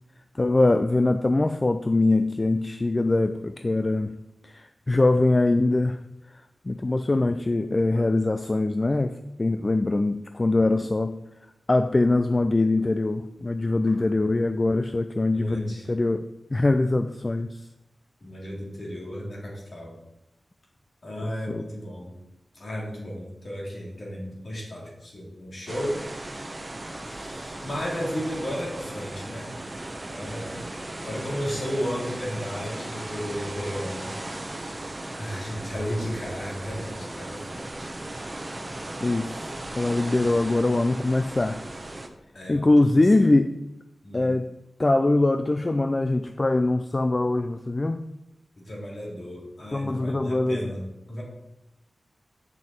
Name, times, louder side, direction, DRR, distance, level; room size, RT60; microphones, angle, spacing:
voice 1, 0.3-6.0 6.7-11.2 11.7-17.6 21.2-21.6 39.0-41.6 42.5-43.6 44.1-44.5 44.8-48.1 49.7-50.7, left 2 dB, 30° left, 9 dB, 0.4 m, -23 dB
voice 2, 15.3-15.9 18.2-20.0 21.0-22.1 22.5-26.0 27.0-29.6 30.0-30.7 31.0-34.1 34.9-37.9 40.1-40.5 42.3-43.3 44.0-44.3 48.6-51.2, equal, 55° left, -3 dB, 3.0 m, -34 dB
sound 1, 25.7-42.1, right 1 dB, 25° right, 0.9 m, -37 dB
8.4 x 6.6 x 4.4 m, 0.88 s
wide cardioid pair, 85°, 0 cm